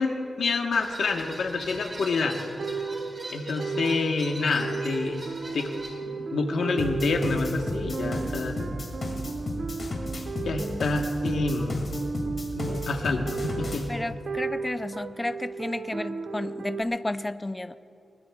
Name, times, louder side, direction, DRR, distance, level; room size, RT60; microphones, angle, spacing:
voice 1, 0.0-2.4 3.3-5.7 6.1-8.6 10.4-11.8 12.6-13.9, left 3 dB, 80° left, 3 dB, 1.1 m, -28 dB
sound 1, 0.7-5.9, right 1 dB, 35° right, 4.4 m, -40 dB
sound 2, 2.4-16.8, right 4 dB, 55° right, 0.5 m, -35 dB
sound 3, 6.8-13.8, left 2 dB, 45° left, 2.3 m, -34 dB
voice 2, 10.6-10.9 13.9-17.8, left 1 dB, 15° left, 13 dB, 0.3 m, -32 dB
22.0 x 19.5 x 2.3 m, 2.6 s
wide cardioid pair, 150°, 0 cm